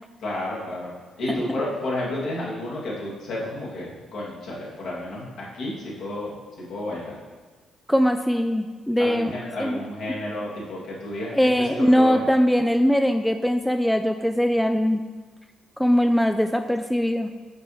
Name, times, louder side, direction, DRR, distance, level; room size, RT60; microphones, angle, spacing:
voice 1, 0.2-0.9 1.2-7.2 9.0-12.3, left 1 dB, 60° left, -5 dB, 1.8 m, -31 dB
voice 2, 7.9-9.3 9.6-9.8 11.3-15.0 15.8-17.3, equal, 5° left, 7 dB, 0.3 m, -21 dB
7.4 x 4.7 x 3.1 m, 1.4 s
figure-of-eight pair, 40°, 0 cm